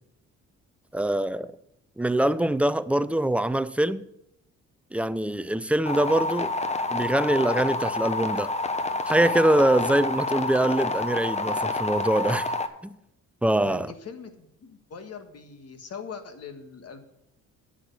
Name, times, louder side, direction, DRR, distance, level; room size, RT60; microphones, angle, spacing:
voice 1, 0.9-1.5 2.0-4.0 4.9-6.6 6.9-8.5 9.1-12.5 12.8-12.9 13.4-13.9, right 1 dB, 5° right, 0.5 m, -24 dB
sound 1, 5.9-12.7, left 2 dB, 20° left, 1.0 m, -28 dB
voice 2, 13.6-17.1, left 6 dB, 55° left, 1.7 m, -42 dB
10.0 x 6.5 x 8.2 m
cardioid pair, 90°, 30 cm